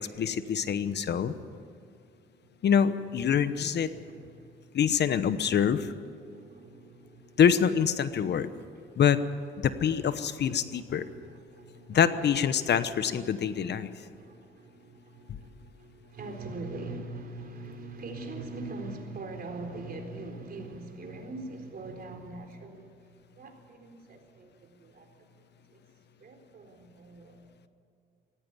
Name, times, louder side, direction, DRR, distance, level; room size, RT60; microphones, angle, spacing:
voice 1, 0.0-1.3 2.6-3.9 4.7-5.9 7.4-8.5 9.0-9.2 9.6-11.0 11.9-13.9, left 8 dB, 60° left, 13 dB, 1.0 m, -25 dB
voice 2, 1.8-2.7 3.9-4.8 6.3-7.4 8.4-8.5 9.7-10.1 10.4-12.1 13.5-25.8 26.2-27.4, right 2 dB, 50° right, 3 dB, 4.1 m, -43 dB
17.0 x 17.0 x 9.8 m, 2.4 s
cardioid pair, 90°, 20 cm